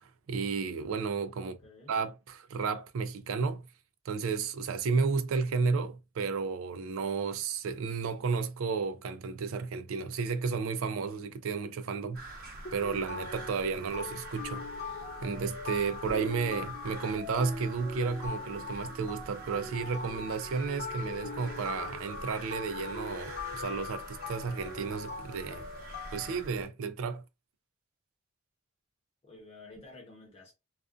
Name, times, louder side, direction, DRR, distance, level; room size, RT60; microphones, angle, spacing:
voice 1, 0.0-1.6 1.9-3.6 4.1-12.2 12.7-14.9 15.2-25.7 26.1-27.2, right 5 dB, 70° right, 0.4 m, -32 dB
voice 2, 1.4-1.9 29.2-30.5, left 2 dB, 30° left, 1.0 m, -51 dB
sound 1, 12.1-26.7, right 2 dB, 45° right, 0.9 m, -46 dB
sound 2, 12.6-26.4, left 4 dB, 45° left, 0.5 m, -41 dB
2.4 x 2.3 x 2.4 m
head